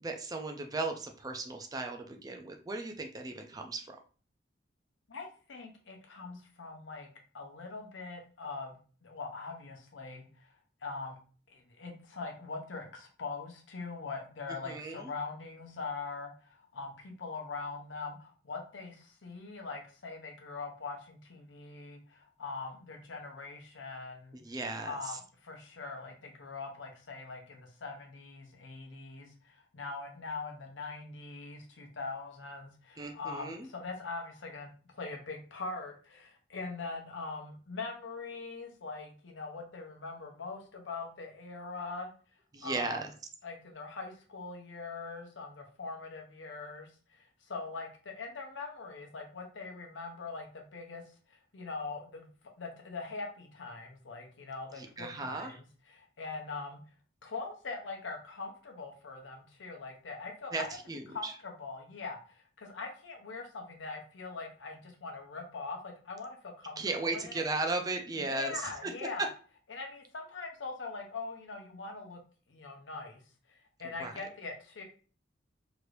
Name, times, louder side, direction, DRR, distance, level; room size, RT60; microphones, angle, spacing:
voice 1, 0.0-4.0 14.6-15.1 24.3-25.2 33.0-33.7 42.5-43.1 54.8-55.5 60.5-61.3 66.8-68.9 74.0-74.1, right 3 dB, 20° right, 4 dB, 0.3 m, -36 dB
voice 2, 5.1-7.1 7.3-8.8 9.0-11.2 11.5-24.4 24.8-42.1 42.6-43.0 43.4-46.9 47.2-51.1 51.5-52.3 52.6-56.8 57.2-60.7 61.1-67.4 68.2-69.3 69.7-72.2 72.5-73.2 73.5-74.8, left 4 dB, 80° left, 2 dB, 0.7 m, -42 dB
3.0 x 2.5 x 3.1 m, 0.40 s
head